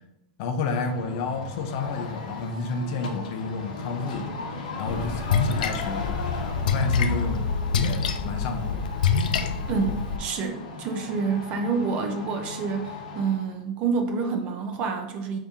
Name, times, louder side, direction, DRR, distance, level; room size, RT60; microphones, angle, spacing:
voice 1, 0.4-4.3 4.8-6.2 6.6-7.4 7.7-8.9, left 4 dB, 40° left, 5 dB, 0.6 m, -30 dB
sound 1, 0.7-13.5, left 3 dB, 65° left, 0.9 m, -37 dB
Splash splatter, 4.9-10.2, left 5 dB, 90° left, 0.4 m, -26 dB
voice 2, 9.7-15.4, right 5 dB, 30° right, 5 dB, 0.5 m, -28 dB
5.2 x 2.7 x 3.5 m, 0.88 s
supercardioid pair, 170°, 4 cm